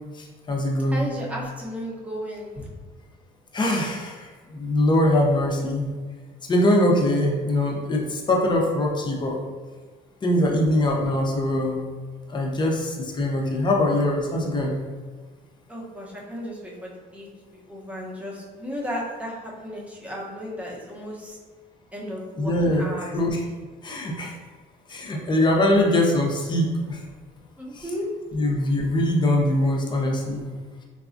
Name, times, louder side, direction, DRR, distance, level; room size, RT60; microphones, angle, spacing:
voice 1, 0.2-1.1 3.5-5.9 6.5-9.4 10.2-11.8 12.3-14.8 22.4-22.8 23.1-23.4 23.8-24.3 24.9-27.0 27.7-27.8 28.3-30.5, left 1 dB, 25° left, 0 dB, 0.6 m, -22 dB
voice 2, 0.9-2.7 15.7-21.4 21.9-23.1 27.6-28.1, equal, 10° right, -3 dB, 0.8 m, -34 dB
4.0 x 2.3 x 2.5 m, 1.5 s
cardioid pair, 110°, 17 cm